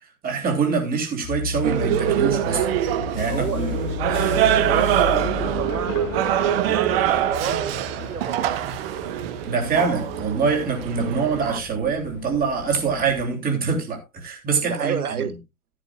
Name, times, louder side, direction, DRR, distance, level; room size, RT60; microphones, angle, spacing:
voice 1, 0.2-2.7 3.1-3.7 4.0-4.3 9.4-15.2, right 5 dB, 20° right, 3.3 m, -24 dB
sound 1, 1.2-13.3, left 4 dB, 25° left, 1.3 m, -34 dB
sound 2, 1.6-11.6, right 12 dB, 40° right, 1.0 m, -24 dB
sound 3, 3.3-9.8, left 7 dB, 65° left, 1.4 m, -39 dB
voice 2, 3.3-4.0 4.5-8.6 14.7-15.3, right 7 dB, 80° right, 0.9 m, -30 dB
14.0 x 10.0 x 2.5 m
figure-of-eight pair, 110°, 44 cm